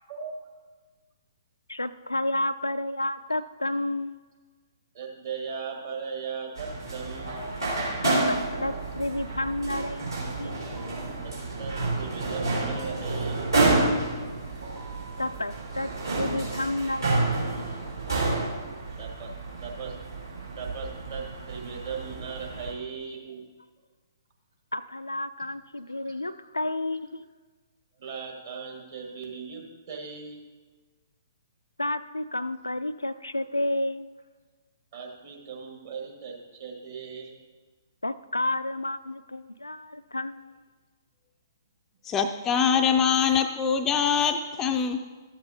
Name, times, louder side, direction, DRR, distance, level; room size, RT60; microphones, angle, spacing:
voice 1, 0.0-0.3 4.9-7.4 11.2-13.5 19.0-19.3 19.6-20.0 20.6-23.4 26.0-26.1 28.0-30.4 34.9-37.3, right 5 dB, 45° right, 0 dB, 1.6 m, -38 dB
voice 2, 1.7-4.2 8.1-10.5 15.2-17.6 24.7-27.2 31.8-34.1 38.0-40.6, left 1 dB, 85° left, 12 dB, 0.3 m, -31 dB
sound 1, 6.6-22.7, right 2 dB, 75° right, 3.2 m, -29 dB
sound 2, 9.8-9.9 10.8-10.9 11.8-11.9 12.8-12.9 13.7-13.9 14.7-15.3, right 5 dB, 25° right, 1.2 m, -49 dB
voice 3, 42.0-45.0, left 7 dB, 15° left, 6 dB, 0.4 m, -23 dB
13.0 x 7.8 x 2.7 m, 1.3 s
figure-of-eight pair, 125°, 2 cm